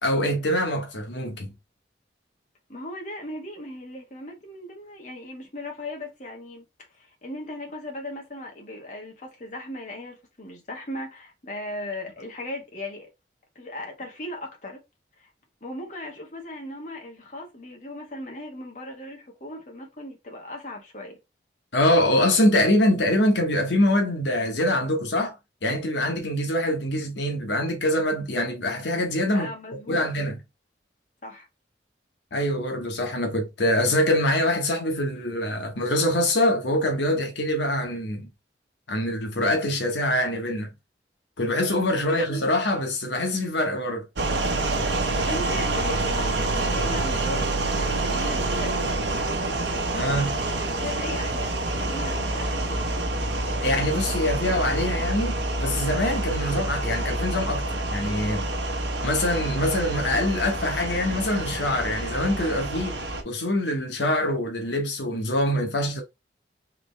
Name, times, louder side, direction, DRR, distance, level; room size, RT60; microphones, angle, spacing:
voice 1, 0.0-1.5 21.7-25.4 25.6-29.5 29.9-30.4 32.3-38.3 38.9-40.7 41.4-44.0 49.9-50.4 53.6-58.5 59.0-62.9 63.2-66.0, left 1 dB, 85° left, 1.1 m, -24 dB
voice 2, 2.7-13.1 13.5-14.8 15.2-15.3 15.6-21.2 29.3-30.1 31.2-31.5 42.0-42.2 45.2-48.9 50.8-52.7, left 1 dB, 45° left, 1.3 m, -37 dB
sound 1, 44.2-63.2, right 2 dB, 80° right, 0.9 m, -27 dB
3.8 x 3.1 x 3.3 m
head